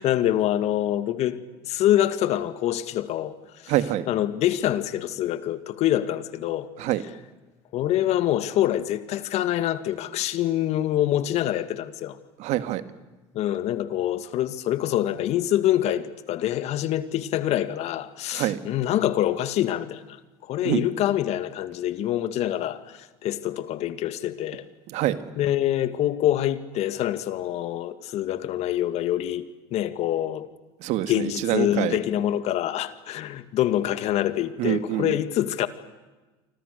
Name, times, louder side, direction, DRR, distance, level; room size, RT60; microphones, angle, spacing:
voice 1, 0.0-1.4 1.6-3.3 3.6-3.7 4.1-6.7 7.7-12.2 13.3-20.2 20.5-24.7 25.4-29.4 29.7-30.5 31.1-35.7, left 12 dB, 60° left, 2.1 m, -25 dB
voice 2, 3.7-4.1 6.8-7.0 12.4-12.8 18.3-18.6 20.6-20.8 24.9-25.2 30.8-32.0 34.6-35.1, right 13 dB, 65° right, 2.0 m, -25 dB
29.5 x 25.5 x 6.8 m
supercardioid pair, 85°, 13 cm